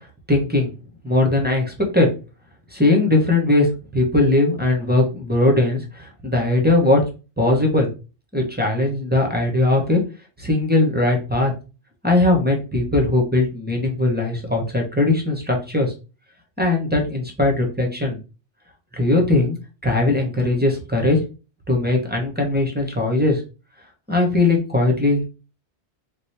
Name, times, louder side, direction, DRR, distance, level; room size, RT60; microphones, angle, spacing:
voice 1, 0.3-0.7 1.0-2.1 2.7-7.0 7.4-7.9 8.3-10.0 10.4-11.5 12.0-15.9 16.6-18.2 18.9-19.6 19.8-21.2 21.7-23.4 24.1-25.3, left 2 dB, 10° right, 1 dB, 0.6 m, -19 dB
4.1 x 2.2 x 3.2 m, 0.33 s
omnidirectional pair, 1.1 m